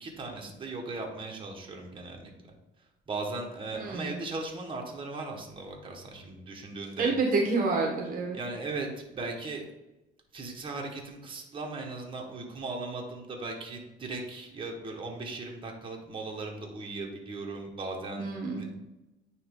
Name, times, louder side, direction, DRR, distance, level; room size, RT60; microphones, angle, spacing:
voice 1, 0.0-2.3 3.1-7.1 8.3-9.6 10.3-18.3 18.5-18.8, right 3 dB, 30° right, 0 dB, 1.3 m, -38 dB
voice 2, 3.8-4.1 7.0-8.4 18.2-18.7, right 3 dB, 55° right, 2 dB, 1.0 m, -28 dB
9.2 x 3.2 x 3.6 m, 0.99 s
cardioid pair, 110°, 17 cm